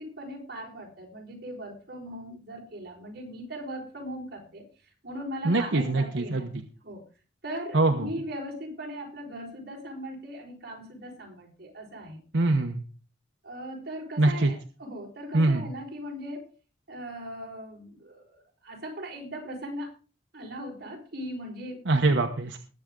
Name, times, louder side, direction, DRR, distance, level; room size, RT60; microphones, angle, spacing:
voice 1, 0.0-4.6 5.0-6.5 6.8-7.0 7.4-12.2 13.4-16.5 16.9-19.9 20.3-21.8, equal, 55° right, -1 dB, 4.7 m, -39 dB
voice 2, 5.4-6.6 7.7-8.1 12.3-12.9 14.2-14.5 15.3-15.7 21.9-22.6, right 2 dB, 80° right, 4 dB, 1.1 m, -23 dB
20.0 x 8.0 x 3.8 m, 0.36 s
head